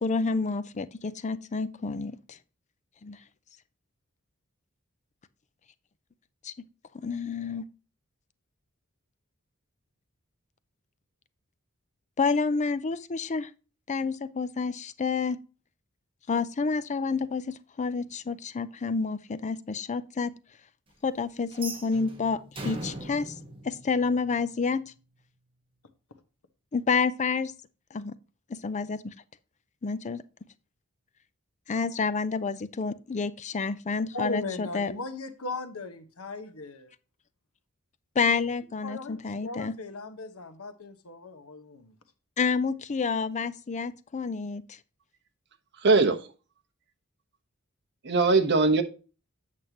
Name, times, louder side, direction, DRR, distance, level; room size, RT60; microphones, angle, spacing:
voice 1, 0.0-2.4 3.0-3.2 6.4-6.5 6.9-7.6 12.2-13.5 13.9-15.4 16.3-20.4 21.0-23.3 23.6-24.9 26.7-27.5 27.9-28.1 28.5-29.1 29.8-30.2 31.7-34.9 38.2-39.8 42.4-44.8, left 4 dB, 35° left, 0.5 m, -29 dB
sound 1, 21.5-24.6, right 2 dB, 25° right, 1.4 m, -40 dB
voice 2, 34.1-36.9 38.8-42.0, left 3 dB, 80° left, 1.1 m, -37 dB
voice 3, 45.8-46.2 48.0-48.8, right 3 dB, 55° right, 1.1 m, -20 dB
8.5 x 6.6 x 2.9 m
head